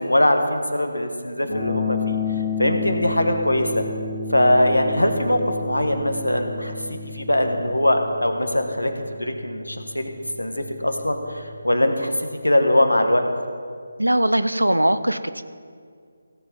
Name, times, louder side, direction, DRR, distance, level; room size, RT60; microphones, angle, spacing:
voice 1, 0.0-3.8 4.3-10.1 10.4-13.3, left 1 dB, 80° left, 5 dB, 1.4 m, -22 dB
sound 1, 1.5-11.6, left 4 dB, 40° left, 2.6 m, -32 dB
voice 2, 14.0-15.4, right 1 dB, 80° right, 12 dB, 0.6 m, -20 dB
16.5 x 6.9 x 5.6 m, 2.2 s
figure-of-eight pair, 155°, 0 cm